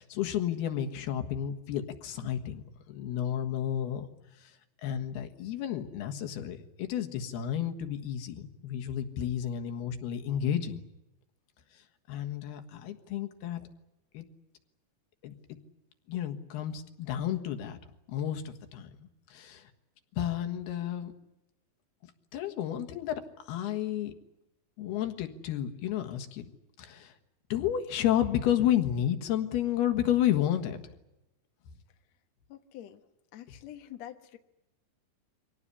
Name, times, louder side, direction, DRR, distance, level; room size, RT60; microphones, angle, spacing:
voice 1, 0.0-4.1 4.4-4.6 4.8-10.8 11.7-13.7 14.1-14.3 15.2-15.6 16.1-17.8 18.1-19.7 20.1-21.1 22.3-24.1 24.8-26.5 26.8-27.2 27.5-30.8, left 10 dB, 80° left, 6 dB, 3.6 m, -31 dB
voice 2, 32.5-33.0 33.3-34.4, left 12 dB, 60° left, 6 dB, 2.0 m, -46 dB
25.0 x 18.0 x 10.0 m, 0.95 s
omnidirectional pair, 4.5 m